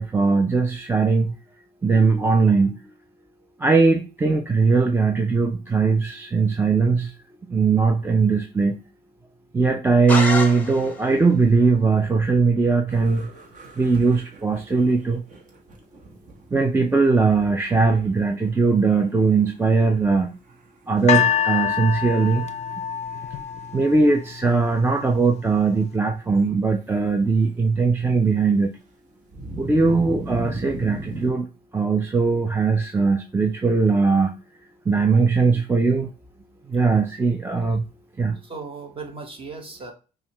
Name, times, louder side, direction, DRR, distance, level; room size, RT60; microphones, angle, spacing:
voice 1, 0.0-1.3 1.8-2.8 3.6-7.1 7.5-8.8 9.5-13.3 13.8-15.2 16.5-20.3 20.9-22.5 23.7-28.7 29.6-31.5 31.7-34.3 34.9-36.1 36.7-37.8 38.2-38.4, right 4 dB, 15° right, 5 dB, 0.4 m, -20 dB
sound 1, 10.1-11.2, left 3 dB, 10° left, 0.9 m, -27 dB
sound 2, 12.9-17.9 18.2-18.5 18.9-19.7 20.1-20.2 20.5-20.7 21.1-21.4 22.1-25.4 25.7-25.8 29.3-31.3, right 1 dB, 50° right, 1.2 m, -39 dB
sound 3, 21.1-24.3 25.0-25.1, left 9 dB, 40° left, 0.4 m, -25 dB
voice 2, 38.4-39.9, right 4 dB, 30° right, 4 dB, 1.2 m, -36 dB
5.4 x 2.3 x 3.0 m, 0.33 s
cardioid pair, 110°, 17 cm